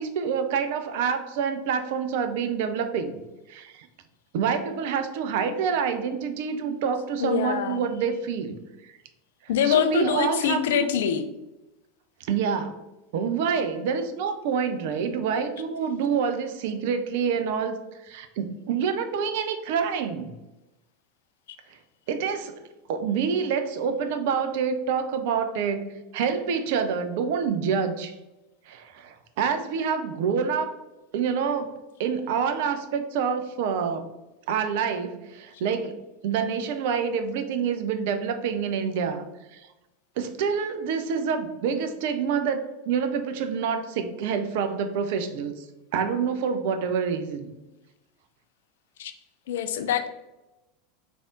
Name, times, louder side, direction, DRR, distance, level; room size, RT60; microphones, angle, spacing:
voice 1, 0.0-3.2 3.5-3.9 4.3-8.6 8.8-8.9 9.6-10.9 12.2-12.8 13.1-17.8 18.1-20.3 22.1-22.6 22.9-28.1 28.7-30.8 31.1-31.7 32.0-34.1 34.5-39.3 39.5-39.6 40.2-45.6 45.9-47.5, right 6 dB, 55° right, 8 dB, 0.4 m, -27 dB
voice 2, 7.2-7.8 9.5-11.3 49.0-49.1 49.5-50.1, left 8 dB, 65° left, 8 dB, 0.3 m, -24 dB
3.3 x 2.5 x 3.6 m, 0.99 s
figure-of-eight pair, 80°, 0 cm